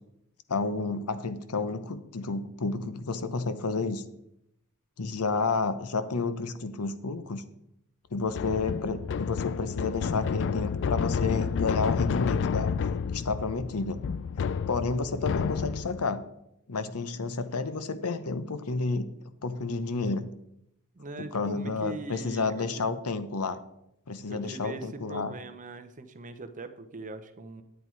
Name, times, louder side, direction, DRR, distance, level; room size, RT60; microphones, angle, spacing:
voice 1, 0.5-4.0 5.0-7.4 8.1-12.7 13.1-14.0 14.7-16.2 16.7-19.1 19.4-20.3 21.2-23.6 24.1-25.3, left 4 dB, 80° left, 12 dB, 0.8 m, -30 dB
sound 1, 8.3-16.1, left 6 dB, 55° left, 0.4 m, -30 dB
voice 2, 20.9-22.8 24.3-27.6, right 3 dB, 35° right, 9 dB, 0.8 m, -41 dB
10.0 x 8.4 x 4.6 m, 0.80 s
head